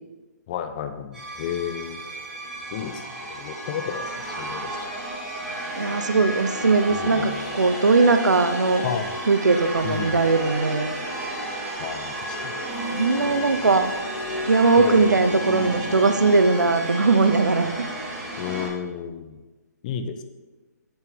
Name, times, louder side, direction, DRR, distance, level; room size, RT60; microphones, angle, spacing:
voice 1, 0.5-2.0 2.7-4.9 6.9-7.5 8.8-9.1 9.8-10.2 11.8-12.5 14.8-15.2 18.4-19.4 19.8-20.2, left 8 dB, 30° left, 8 dB, 0.6 m, -32 dB
sound 1, 1.1-18.7, right 1 dB, 5° right, 2.7 m, -32 dB
voice 2, 5.8-8.8 9.3-10.9 12.9-13.9 14.5-17.9, right 3 dB, 80° right, 9 dB, 0.7 m, -20 dB
7.2 x 5.7 x 5.1 m, 1.2 s
figure-of-eight pair, 145°, 9 cm